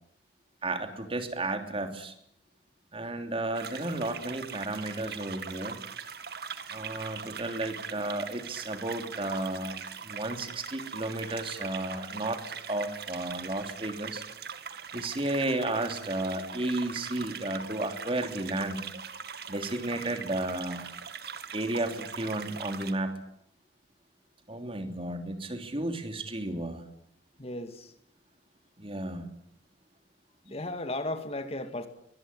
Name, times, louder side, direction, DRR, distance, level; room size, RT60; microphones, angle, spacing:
voice 1, 0.6-2.1 2.9-5.8 6.7-9.8 10.0-14.2 14.9-18.8 19.5-20.9 21.5-23.1 24.5-26.8 28.8-29.3 30.4-30.5, right 2 dB, 30° right, 3.2 m, -33 dB
sound 1, 3.5-22.9, right 6 dB, 60° right, 2.2 m, -41 dB
voice 2, 27.4-27.9 30.5-31.9, left 2 dB, 35° left, 2.1 m, -35 dB
23.5 x 20.0 x 9.9 m
head